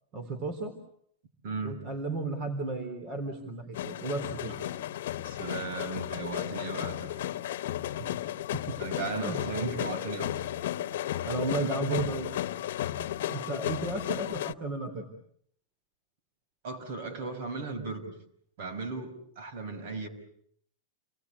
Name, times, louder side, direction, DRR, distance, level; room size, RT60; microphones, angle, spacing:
voice 1, 0.1-0.7 1.6-4.5 8.0-8.1 8.5-8.7 9.2-9.7 11.2-12.3 13.0-15.1, right 3 dB, 35° right, 3.7 m, -34 dB
voice 2, 1.4-1.8 4.5-4.6 5.2-7.2 8.8-10.3 16.6-18.1 18.6-20.1, right 3 dB, 60° right, 6.1 m, -36 dB
sound 1, 3.7-14.5, left 12 dB, 70° left, 1.1 m, -34 dB
29.5 x 20.5 x 8.5 m
supercardioid pair, 155°, 0 cm